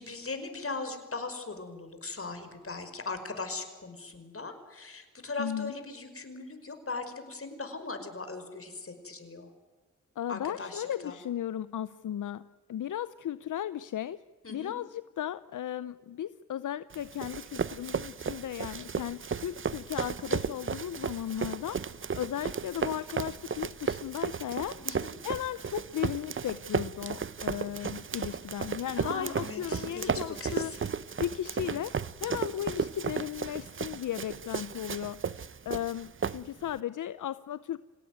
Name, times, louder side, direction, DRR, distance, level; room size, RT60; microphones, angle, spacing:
voice 1, 0.0-9.5 10.3-11.1 14.4-14.7 24.8-25.1 29.0-30.8, left 3 dB, 45° left, 8 dB, 5.4 m, -39 dB
voice 2, 5.4-5.7 10.2-14.2 14.5-21.8 22.1-24.8 25.2-30.7 31.2-31.9 32.2-35.2 35.7-37.8, left 11 dB, 75° left, 15 dB, 0.7 m, -36 dB
Run, 16.9-36.8, right 6 dB, 40° right, 0.8 m, -35 dB
26.5 x 18.0 x 9.4 m, 1.3 s
cardioid pair, 55°, 31 cm